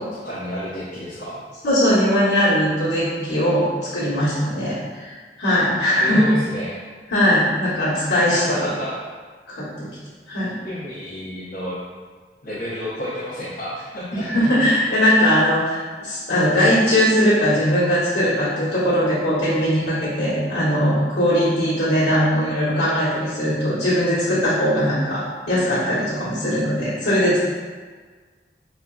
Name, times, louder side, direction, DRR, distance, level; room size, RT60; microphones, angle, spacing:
voice 1, 0.2-1.4 6.0-6.8 8.3-9.0 10.6-11.8 12.4-14.3 15.1-15.2, equal, 55° left, -12 dB, 1.0 m, -30 dB
voice 2, 1.6-3.6 3.9-6.2 7.1-8.5 9.6-9.9 10.3-10.5 14.1-27.4, equal, 85° left, -17 dB, 1.4 m, -20 dB
4.3 x 2.5 x 2.4 m, 1.5 s
head